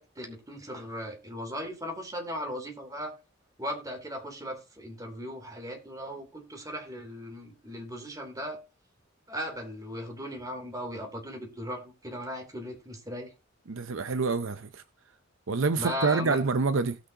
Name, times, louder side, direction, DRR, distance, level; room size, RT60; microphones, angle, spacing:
voice 1, 0.0-3.1 3.6-8.6 9.3-13.3 15.8-16.4, equal, 20° right, 3.2 m, -37 dB
voice 2, 13.7-14.8 15.5-17.0, right 4 dB, 70° right, 0.7 m, -27 dB
17.5 x 6.2 x 2.9 m
head